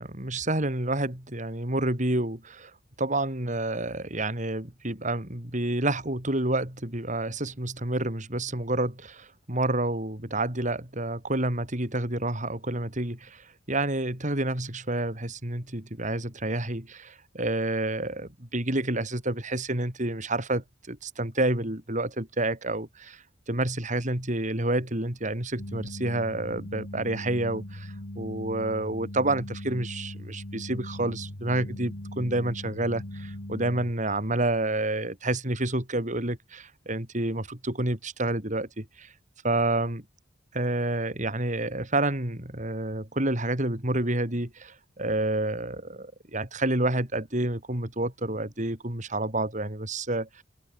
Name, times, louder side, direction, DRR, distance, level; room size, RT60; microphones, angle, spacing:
voice 1, 0.0-2.7 3.0-23.2 23.5-39.1 39.4-40.0 40.5-50.3, right 2 dB, 40° right, 4.5 m, -29 dB
sound 1, 25.6-33.9, left 1 dB, 65° left, 2.7 m, -39 dB
open air
head